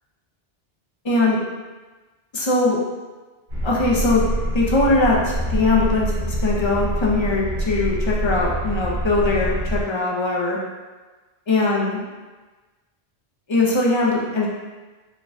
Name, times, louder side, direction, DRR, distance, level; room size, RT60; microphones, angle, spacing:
voice 1, 1.0-1.4 2.3-2.8 3.6-4.2 4.5-10.6 11.5-12.0 13.5-14.5, left 2 dB, 40° left, -4 dB, 0.4 m, -20 dB
sound 1, 3.5-9.8, right 1 dB, 85° right, 1.5 m, -25 dB
4.3 x 2.2 x 2.5 m, 1.3 s
omnidirectional pair, 1.1 m